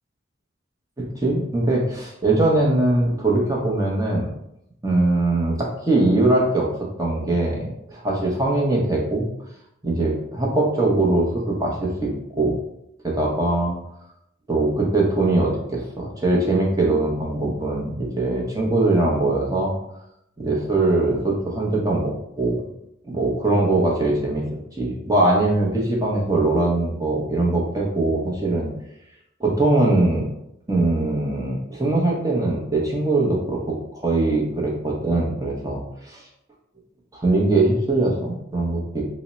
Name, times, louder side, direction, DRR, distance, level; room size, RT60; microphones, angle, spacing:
voice 1, 1.0-4.3 4.8-6.7 7.0-9.3 9.8-12.1 12.4-12.6 13.0-13.8 14.5-19.7 20.4-22.7 23.0-24.5 24.8-28.7 29.4-30.3 30.7-36.3 37.1-39.0, right 2 dB, 15° right, -2 dB, 0.7 m, -21 dB
3.5 x 2.0 x 4.1 m, 0.81 s
head